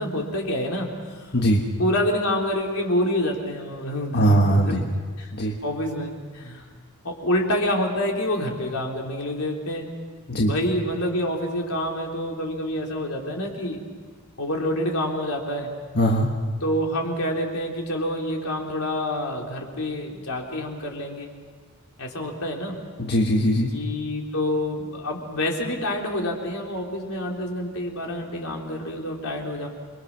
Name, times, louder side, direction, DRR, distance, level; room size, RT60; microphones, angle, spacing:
voice 1, 0.0-1.4 1.8-4.8 5.2-5.3 5.6-6.7 7.0-9.9 10.4-13.8 14.4-15.8 16.6-21.3 22.0-22.8 23.7-29.7, left 1 dB, 80° left, 0 dB, 3.6 m, -27 dB
voice 2, 4.1-4.8 5.3-5.5 10.3-10.5 15.9-16.3 23.0-23.7, equal, 50° left, 0 dB, 1.5 m, -20 dB
28.0 x 22.0 x 6.2 m, 1.5 s
head